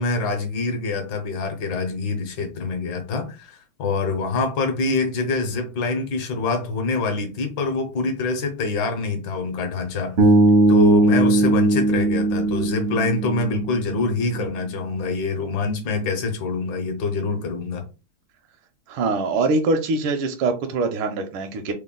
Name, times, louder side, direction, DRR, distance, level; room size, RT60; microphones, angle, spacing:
voice 1, 0.0-10.2 10.7-17.8, left 3 dB, 65° left, 1.4 m, -25 dB
Bass guitar, 10.2-14.3, right 2 dB, 60° right, 0.7 m, -19 dB
voice 2, 18.9-21.7, right 3 dB, 80° right, 1.4 m, -23 dB
3.8 x 2.2 x 3.6 m
omnidirectional pair, 2.4 m